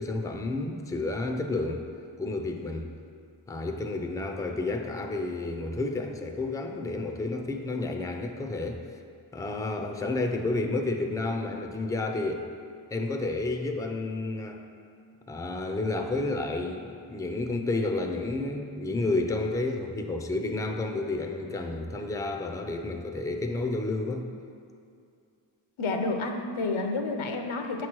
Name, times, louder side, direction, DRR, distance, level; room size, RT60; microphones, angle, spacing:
voice 1, 0.0-1.9 2.2-2.9 3.5-8.8 9.3-12.5 12.9-14.6 15.3-24.3, left 2 dB, 5° left, 4 dB, 0.5 m, -31 dB
voice 2, 25.8-27.9, left 3 dB, 75° left, 4 dB, 0.8 m, -30 dB
6.9 x 3.2 x 6.1 m, 2.4 s
cardioid pair, 50°, 50 cm